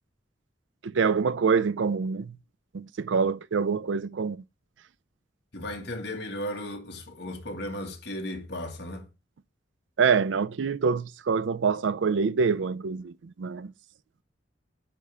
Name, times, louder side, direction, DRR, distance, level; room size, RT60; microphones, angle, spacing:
voice 1, 0.8-2.4 2.7-4.4 10.0-13.7, right 5 dB, 75° right, 0.4 m, -26 dB
voice 2, 5.5-9.1, left 1 dB, 60° left, 2.0 m, -35 dB
9.9 x 3.5 x 5.4 m
head